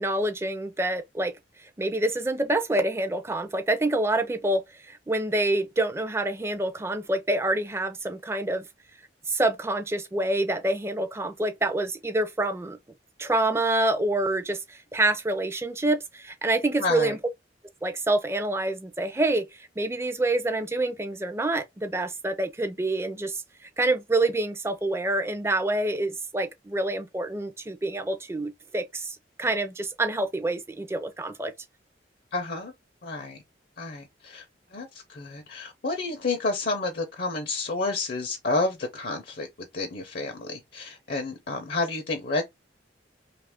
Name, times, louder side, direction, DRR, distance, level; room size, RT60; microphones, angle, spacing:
voice 1, 0.0-1.3 1.6-8.6 9.3-12.8 13.2-17.2 17.8-31.5, right 2 dB, 15° right, 0.4 m, -27 dB
voice 2, 16.8-17.1 32.3-32.7 33.0-33.4 33.8-34.4 34.7-39.5 39.7-42.4, left 3 dB, 55° left, 0.5 m, -30 dB
2.8 x 2.4 x 3.4 m
head